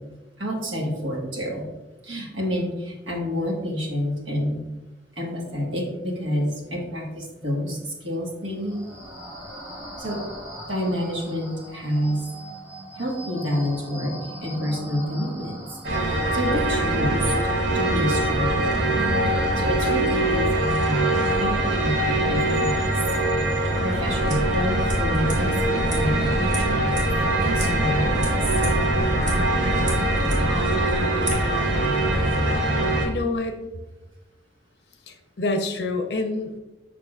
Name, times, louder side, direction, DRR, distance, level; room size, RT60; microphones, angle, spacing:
voice 1, 0.4-1.6 2.0-4.6 5.1-8.8 10.0-10.2 10.7-12.2 13.0-15.6 15.9-17.3 17.7-18.9 19.3-22.9 23.8-26.9 27.4-28.4, equal, 85° right, -1 dB, 1.6 m, -28 dB
sound 1, 8.4-21.9, right 1 dB, 15° right, 1.6 m, -42 dB
sound 2, 15.8-33.1, right 1 dB, 70° right, 1.1 m, -23 dB
sound 3, 23.9-31.3, equal, 40° right, 1.4 m, -30 dB
voice 2, 33.0-33.6 35.1-36.6, left 2 dB, 60° left, 5 dB, 0.7 m, -27 dB
6.8 x 5.9 x 2.4 m, 1.0 s
head